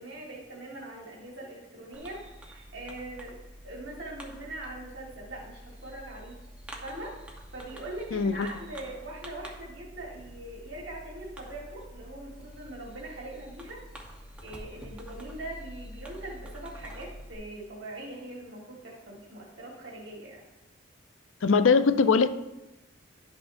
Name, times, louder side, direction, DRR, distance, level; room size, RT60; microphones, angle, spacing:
voice 1, 0.0-6.4 6.8-7.1 7.5-13.8 14.4-20.5, right 1 dB, 65° right, -3 dB, 1.6 m, -42 dB
Fireworks, 1.9-17.4, equal, 5° right, 0.9 m, -47 dB
voice 2, 8.1-8.5 21.4-22.3, left 5 dB, 90° left, 12 dB, 0.4 m, -21 dB
11.5 x 6.2 x 2.6 m, 0.99 s
head